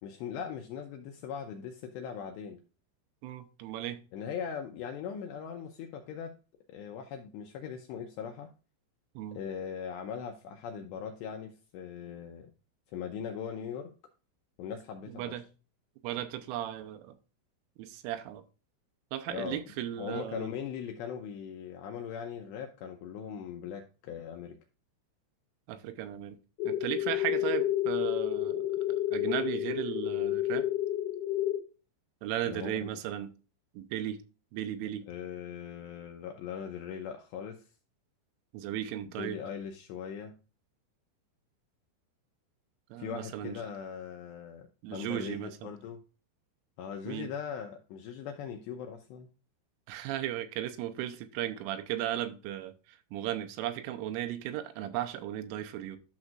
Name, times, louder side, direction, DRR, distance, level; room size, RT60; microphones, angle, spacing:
voice 1, 0.0-2.6 4.1-6.4 6.7-8.5 9.3-12.5 12.9-13.9 14.6-15.4 19.3-19.6 20.0-24.6 32.4-32.9 35.1-37.7 39.1-40.3 43.0-46.0 46.8-49.3, left 7 dB, 85° left, 2.5 m, -40 dB
voice 2, 3.2-4.0 9.2-9.4 15.1-15.5 16.0-17.2 17.8-18.4 19.1-20.5 25.7-26.4 26.7-30.7 32.2-33.3 33.7-34.2 34.5-35.0 38.5-39.4 42.9-43.6 44.8-45.7 47.1-47.3 49.9-56.0, right 12 dB, 90° right, 3.2 m, -36 dB
sound 1, 26.6-31.6, left 13 dB, 60° left, 2.9 m, -30 dB
11.5 x 6.1 x 2.4 m
omnidirectional pair, 5.7 m